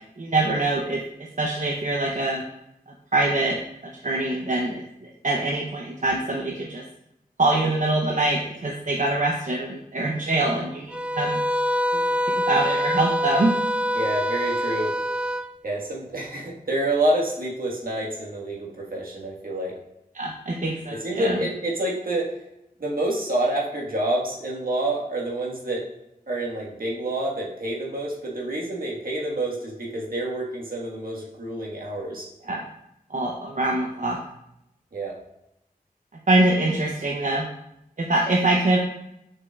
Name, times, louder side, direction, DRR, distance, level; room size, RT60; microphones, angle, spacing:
voice 1, 0.2-1.0 1.4-2.4 3.1-3.6 4.0-4.8 5.2-6.8 7.4-11.4 11.9-12.0 12.5-13.5 20.1-21.4 32.4-32.6 33.1-34.2 36.3-37.5 38.0-38.8, right 2 dB, 55° right, -1 dB, 0.8 m, -24 dB
sound 1, 10.9-15.5, equal, 5° right, 0.4 m, -25 dB
voice 2, 13.9-14.9 15.6-19.7 20.9-22.2 22.8-25.8 26.3-32.2 34.9-35.1, right 1 dB, 70° right, -3 dB, 1.7 m, -28 dB
7.1 x 5.4 x 2.4 m, 0.84 s
wide cardioid pair, 65°, 15 cm